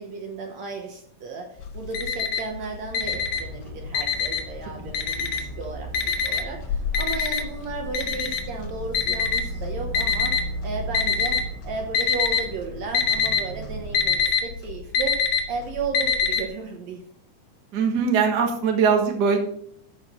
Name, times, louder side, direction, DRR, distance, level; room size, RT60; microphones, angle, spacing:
voice 1, 0.0-15.2 15.5-17.0, right 4 dB, 65° right, 3 dB, 2.0 m, -34 dB
Alarm, 1.6-2.6 2.9-4.6 4.9-5.6 5.9-10.4 10.9-11.6 11.8-12.5 12.7-16.4, left 6 dB, 80° left, 2.5 m, -24 dB
sound 1, 3.0-14.1, right 1 dB, 80° right, 3.5 m, -36 dB
voice 2, 17.7-19.4, right 6 dB, 40° right, 3 dB, 1.6 m, -21 dB
13.0 x 4.8 x 5.2 m, 0.66 s
omnidirectional pair, 3.8 m